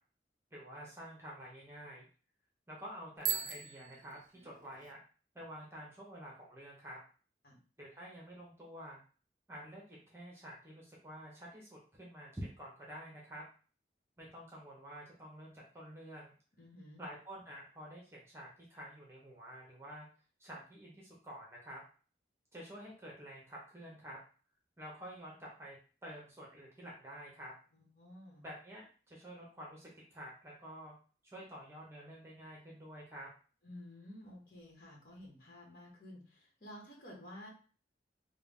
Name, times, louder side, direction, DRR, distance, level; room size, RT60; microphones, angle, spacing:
voice 1, 0.5-2.1 2.7-5.0 5.3-7.0 7.8-9.0 9.5-13.4 14.2-16.3 17.0-20.1 20.4-21.8 22.5-24.2 24.8-25.8 26.0-27.5 28.4-30.9 31.2-33.3, equal, 15° right, -3 dB, 0.8 m, -49 dB
Bicycle bell, 3.2-4.9, right 10 dB, 45° right, 0.4 m, -39 dB
voice 2, 16.6-17.0 27.7-28.4 33.6-37.5, left 1 dB, 50° left, -2 dB, 1.3 m, -52 dB
3.5 x 2.2 x 3.6 m, 0.38 s
head